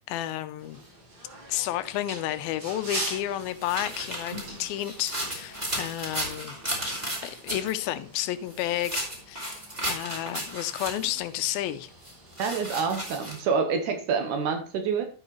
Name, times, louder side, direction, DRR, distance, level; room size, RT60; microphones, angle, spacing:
voice 1, 0.1-0.8 1.5-6.6 7.2-9.6 9.9-11.9, left 13 dB, 85° left, 2.4 m, -31 dB
sound 1, 0.6-13.1, right 2 dB, 45° right, 5.1 m, -43 dB
sound 2, 2.9-7.8 8.5-11.2 12.0-13.4, equal, 10° right, 2.5 m, -34 dB
voice 2, 12.4-15.1, right 5 dB, 70° right, 2.1 m, -27 dB
13.5 x 5.4 x 3.1 m
omnidirectional pair, 4.3 m